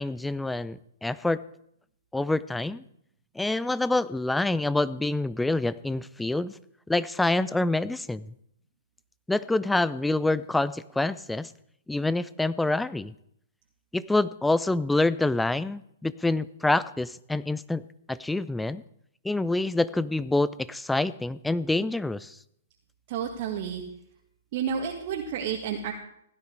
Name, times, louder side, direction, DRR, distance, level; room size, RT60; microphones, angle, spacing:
voice 1, 0.0-1.4 2.1-2.8 3.4-6.6 6.9-8.3 9.3-11.5 11.9-13.1 13.9-18.8 19.2-22.4, left 2 dB, 5° left, 17 dB, 0.5 m, -26 dB
voice 2, 23.1-23.8 24.5-25.9, right 7 dB, 45° right, 0 dB, 2.0 m, -30 dB
16.5 x 12.5 x 4.7 m, 0.74 s
figure-of-eight pair, 120°, 0 cm